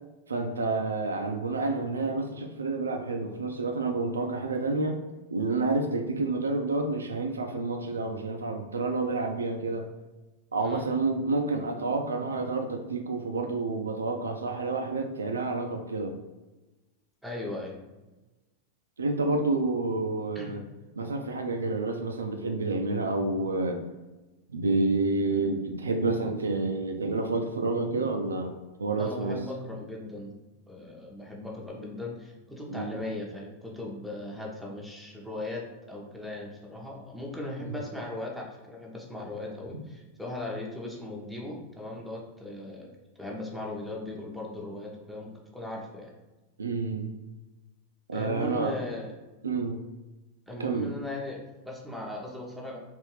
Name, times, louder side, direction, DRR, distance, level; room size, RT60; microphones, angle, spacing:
voice 1, 0.3-5.0 5.3-9.9 10.5-16.2 19.0-20.6 21.0-23.8 24.5-28.5 28.8-29.4 32.7-33.0 37.6-37.7 39.7-39.8 46.6-47.1 48.1-48.7 49.4-49.8 50.6-50.9, right 3 dB, 75° right, 4 dB, 0.3 m, -29 dB
voice 2, 17.2-17.8 20.3-20.6 29.0-30.3 30.7-42.9 43.2-46.1 48.1-49.1 50.5-52.8, left 1 dB, ahead, -3 dB, 0.7 m, -38 dB
3.4 x 2.5 x 3.1 m, 1.1 s
figure-of-eight pair, 90°, 0 cm